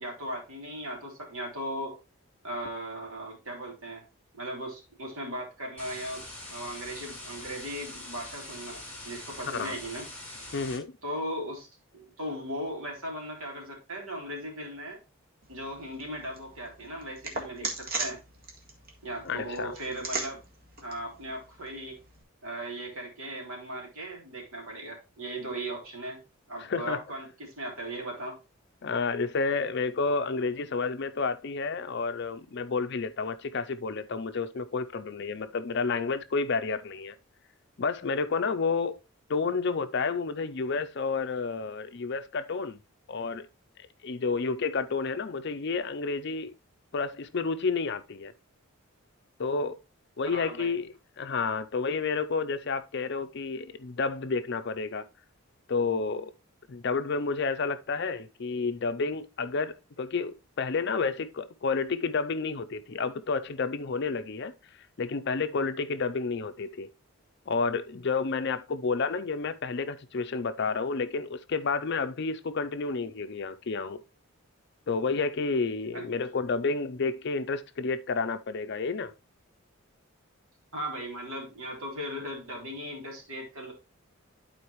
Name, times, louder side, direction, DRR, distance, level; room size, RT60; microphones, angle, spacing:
voice 1, 0.0-2.0 2.4-4.0 4.3-10.1 11.0-11.7 11.9-15.0 15.5-18.2 19.0-20.4 20.8-22.0 22.4-26.2 26.5-28.4 50.3-50.8 75.9-76.0 80.7-83.7, right 1 dB, 70° right, 3.0 m, -37 dB
sound 1, 5.8-10.8, left 2 dB, 10° left, 2.9 m, -43 dB
voice 2, 10.5-10.9 19.2-19.7 26.6-27.0 28.8-37.2 37.8-38.9 39.3-42.8 43.1-43.5 44.0-46.5 46.9-48.3 49.4-49.8 50.2-55.1 55.7-56.3 56.7-64.5 65.0-66.9 67.5-74.0 74.9-79.1, left 4 dB, 50° left, 0.5 m, -30 dB
sound 2, 15.4-22.2, right 3 dB, 45° right, 1.8 m, -40 dB
12.0 x 4.3 x 3.1 m
head